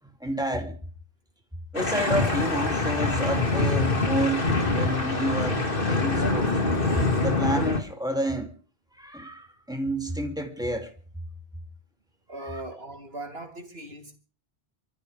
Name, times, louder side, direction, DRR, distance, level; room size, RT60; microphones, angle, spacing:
voice 1, 0.2-0.8 1.7-6.5 7.2-8.5 9.0-10.9, right 1 dB, 5° right, 3.1 m, -29 dB
sound 1, 1.7-7.8, left 2 dB, 60° left, 2.5 m, -25 dB
voice 2, 12.3-14.2, right 2 dB, 70° right, 3.8 m, -39 dB
28.0 x 14.5 x 3.6 m
omnidirectional pair, 1.1 m